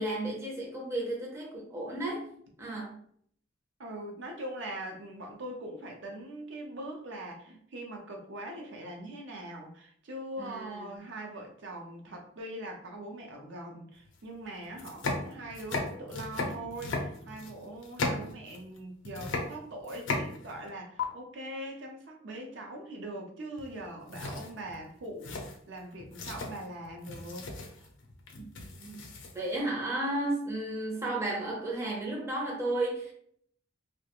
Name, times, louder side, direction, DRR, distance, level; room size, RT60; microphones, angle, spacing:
voice 1, 0.0-2.3 2.6-3.0 10.4-10.9 28.3-29.0 29.3-33.1, right 1 dB, 15° right, 0.5 m, -33 dB
voice 2, 3.8-27.5 27.8-27.9, right 1 dB, 65° right, 0.5 m, -42 dB
sound 1, 14.1-14.2 14.7-18.8 19.0-20.7 21.0-21.1 23.6-23.8 24.1-29.6, left 3 dB, 75° left, 0.5 m, -36 dB
2.3 x 2.1 x 2.8 m
head